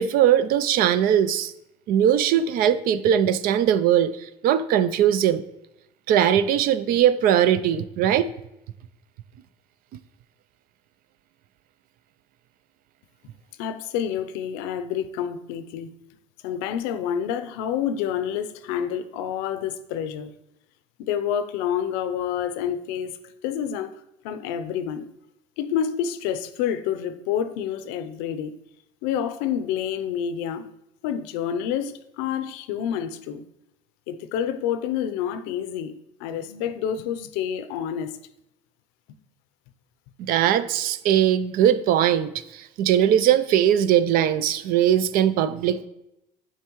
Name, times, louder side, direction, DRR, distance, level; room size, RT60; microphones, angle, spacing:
voice 1, 0.0-1.5 1.9-5.4 6.1-8.3 40.3-45.9, right 10 dB, 60° right, 0.4 m, -20 dB
voice 2, 13.6-15.9 16.4-20.3 21.0-23.1 23.4-23.9 24.2-25.1 25.6-28.5 29.0-30.7 31.0-33.4 34.1-35.9 36.2-38.2, left 9 dB, 80° left, 0.6 m, -28 dB
8.1 x 4.6 x 3.0 m
supercardioid pair, 100°, 17 cm